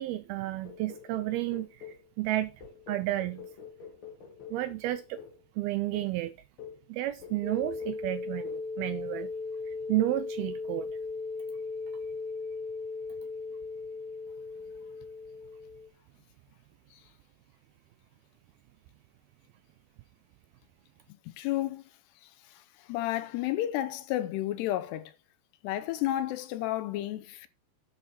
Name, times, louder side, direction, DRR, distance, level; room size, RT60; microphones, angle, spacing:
voice 1, 0.0-1.7 2.2-2.5 2.9-3.5 4.5-5.2 5.6-6.3 6.9-9.3 9.9-10.9, right 16 dB, 85° right, 2.2 m, -31 dB
sound 1, 0.6-2.1 2.6-5.4 5.9-6.2 6.6-6.9 7.2-7.5 7.8-8.1 8.5-8.7, left 7 dB, 55° left, 1.6 m, -47 dB
sound 2, 7.4-15.9, left 4 dB, 60° right, 3.9 m, -37 dB
voice 2, 21.4-21.8 22.9-25.1 25.6-27.5, left 14 dB, 80° left, 2.8 m, -31 dB
10.5 x 7.0 x 4.3 m
omnidirectional pair, 4.9 m